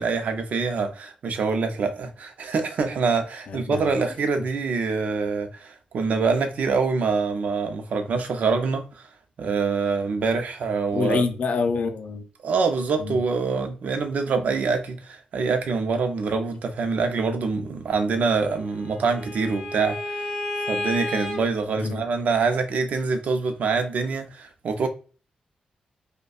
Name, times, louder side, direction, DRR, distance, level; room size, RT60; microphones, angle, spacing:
voice 1, 0.0-9.1 9.4-11.2 12.4-20.3 20.7-24.9, right 4 dB, 65° right, 0.5 m, -25 dB
voice 2, 3.5-3.9 10.9-12.3 13.0-13.2 21.8-22.0, left 4 dB, 60° left, 0.5 m, -26 dB
Bowed string instrument, 18.3-21.4, left 1 dB, 25° left, 1.6 m, -32 dB
5.1 x 2.2 x 2.3 m
wide cardioid pair, 165°, 3 cm